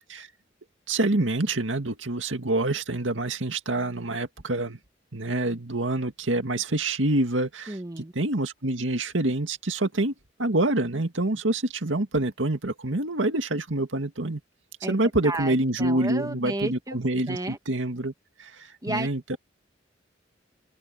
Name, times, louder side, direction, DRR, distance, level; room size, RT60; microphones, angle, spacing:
voice 1, 0.9-4.8 5.1-10.1 10.4-14.4 14.9-18.1 18.4-19.4, right 2 dB, 90° right, 2.1 m, -26 dB
voice 2, 7.7-8.1 14.8-15.0 15.2-17.0 17.3-17.6 18.8-19.1, right 2 dB, 20° right, 1.9 m, -32 dB
head